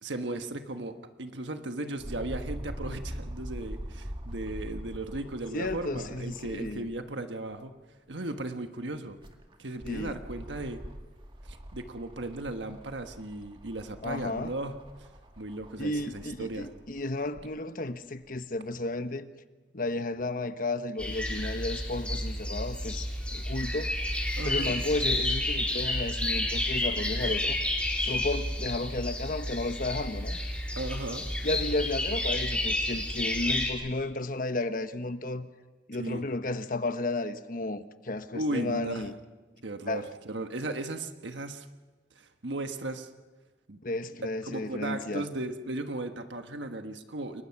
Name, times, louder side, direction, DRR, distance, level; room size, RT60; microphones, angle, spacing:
voice 1, 0.0-7.7 8.1-9.2 9.6-10.8 11.5-15.1 15.4-16.7 24.4-24.7 30.8-31.3 36.0-36.2 38.3-39.1 39.6-41.7 42.1-43.1 43.7-43.8 44.4-47.4, right 2 dB, 80° right, 1.4 m, -36 dB
sound 1, 2.0-7.0 7.5-7.6 8.9-17.5 18.2-18.3, equal, 30° right, 2.1 m, -43 dB
voice 2, 5.5-6.9 9.8-10.2 14.0-14.5 15.8-19.3 19.7-23.9 24.4-27.6 28.0-30.4 31.4-35.5 35.9-39.1 39.9-40.0 43.8-45.2, left 2 dB, 50° left, 1.2 m, -33 dB
sound 2, 21.0-33.7, left 1 dB, 5° left, 4.1 m, -31 dB
29.0 x 22.5 x 5.9 m
head